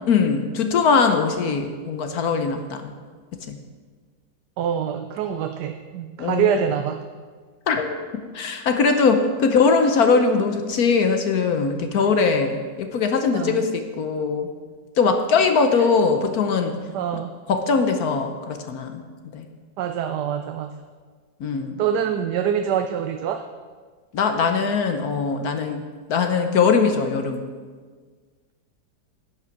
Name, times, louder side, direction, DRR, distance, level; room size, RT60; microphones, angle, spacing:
voice 1, 0.1-2.9 3.5-3.6 6.2-6.6 7.7-8.0 8.3-13.7 14.0-14.5 15.0-16.8 17.5-19.0 19.3-19.5 21.4-21.8 24.1-25.8 26.1-27.4, left 5 dB, 65° left, 6 dB, 1.3 m, -21 dB
voice 2, 4.6-7.0 13.3-13.7 16.9-17.3 19.8-20.7 21.8-23.4, right 8 dB, 80° right, 7 dB, 1.2 m, -25 dB
11.0 x 8.7 x 5.9 m, 1.5 s
omnidirectional pair, 1.8 m